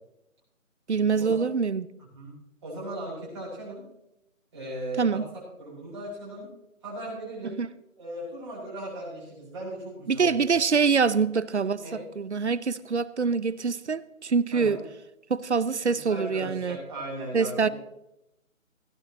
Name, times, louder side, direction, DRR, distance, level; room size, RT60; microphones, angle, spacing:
voice 1, 0.9-1.9 5.0-5.2 7.5-7.7 10.1-11.8 12.2-14.8 15.3-16.8 17.3-17.7, right 5 dB, 55° right, 18 dB, 0.6 m, -25 dB
voice 2, 2.6-3.8 4.5-5.2 5.6-6.5 6.8-7.6 8.0-10.5 11.8-12.0 14.5-14.8 15.9-17.7, right 1 dB, 20° right, -7 dB, 6.0 m, -37 dB
17.0 x 12.5 x 3.0 m, 0.85 s
figure-of-eight pair, 170°, 41 cm